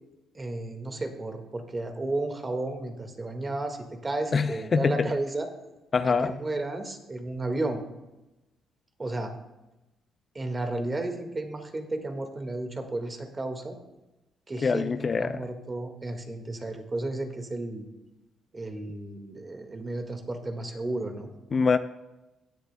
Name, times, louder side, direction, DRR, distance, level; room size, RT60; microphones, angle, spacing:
voice 1, 0.3-5.5 6.0-7.8 9.0-9.3 10.3-13.7 14.5-14.9 15.2-17.9 18.5-21.3, right 2 dB, 25° right, 5 dB, 1.7 m, -33 dB
voice 2, 4.3-5.1 5.9-6.4 14.6-15.4 21.5-21.8, left 5 dB, 40° left, 12 dB, 0.4 m, -24 dB
16.0 x 10.5 x 2.2 m, 1.0 s
cardioid pair, 90°, 0 cm